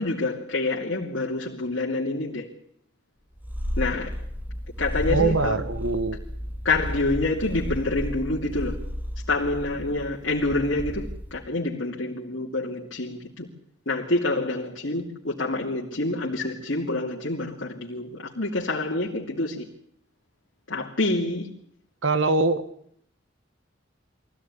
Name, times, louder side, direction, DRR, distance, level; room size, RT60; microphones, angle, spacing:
voice 1, 0.0-2.5 3.8-4.1 4.8-5.6 6.6-8.8 9.3-13.5 13.9-19.7 20.7-21.5, left 2 dB, 65° left, 2.8 m, -27 dB
Purr, 3.4-11.5, equal, 10° right, 2.2 m, -33 dB
voice 2, 5.1-6.2 22.0-22.7, right 3 dB, 85° right, 1.7 m, -23 dB
23.0 x 16.0 x 9.9 m
head